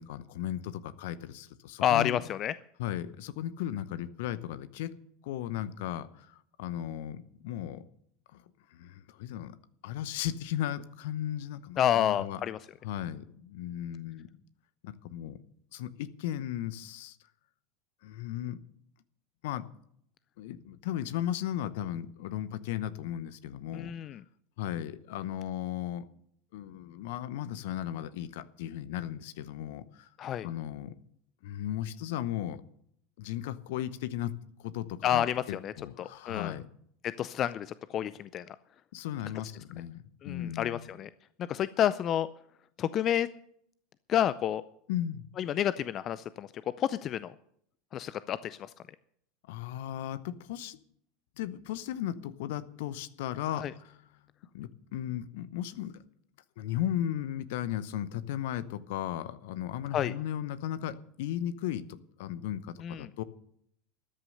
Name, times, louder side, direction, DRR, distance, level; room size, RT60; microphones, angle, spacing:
voice 1, 0.0-2.2 2.8-4.9 5.2-7.8 8.3-8.4 8.7-9.6 9.8-12.4 12.8-14.3 14.8-15.4 15.7-17.2 18.0-18.6 19.4-19.6 20.4-23.9 24.6-26.1 26.5-30.1 30.4-30.9 31.4-32.6 33.2-34.3 34.6-36.7 38.9-40.8 44.9-45.3 49.5-50.8 51.4-54.0 54.5-56.0 56.6-63.2, left 11 dB, 65° left, 15 dB, 0.8 m, -36 dB
voice 2, 1.8-2.5 11.8-12.6 23.7-24.2 30.2-30.5 35.0-36.6 37.0-38.6 40.2-41.1 41.4-42.3 42.8-43.3 44.1-44.6 45.4-46.5 46.8-47.3 47.9-48.7 53.5-53.7 59.9-60.1 62.8-63.1, left 10 dB, 40° left, 16 dB, 0.5 m, -29 dB
13.5 x 10.0 x 6.6 m, 0.70 s
hypercardioid pair, 80°, 0 cm